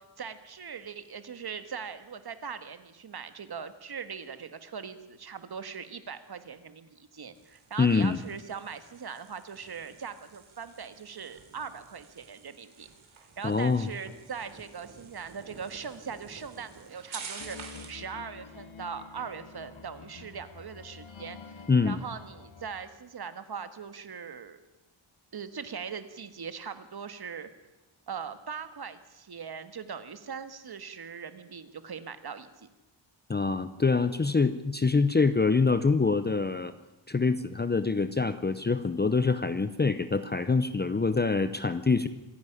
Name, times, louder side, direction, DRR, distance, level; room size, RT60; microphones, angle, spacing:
voice 1, 0.0-12.9 13.4-21.4 21.8-24.6 25.3-27.5 28.1-32.7, right 6 dB, 50° right, 11 dB, 1.6 m, -40 dB
sound 1, 7.3-18.1, right 5 dB, 75° right, 3.7 m, -49 dB
voice 2, 7.8-8.2 13.4-13.9 21.7-22.0 33.3-36.7 37.1-42.1, left 4 dB, 20° left, 12 dB, 0.7 m, -25 dB
loop and meander, 17.4-22.9, left 5 dB, 75° left, 2.7 m, -48 dB
25.5 x 11.0 x 10.0 m, 1.0 s
wide cardioid pair, 155°, 48 cm